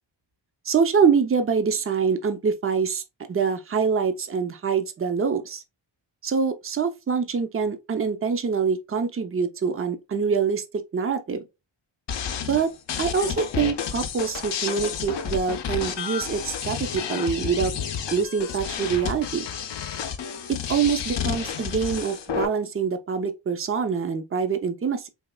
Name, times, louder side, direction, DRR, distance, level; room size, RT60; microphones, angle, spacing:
voice 1, 0.6-3.0 3.3-5.6 6.2-10.6 10.9-11.5 12.5-12.7 13.0-17.7 18.1-19.5 20.5-25.1, right 6 dB, 30° right, 0.5 m, -25 dB
sound 1, 12.1-22.5, left 7 dB, 65° left, 0.6 m, -31 dB
4.2 x 2.8 x 2.2 m
wide cardioid pair, 125°, 47 cm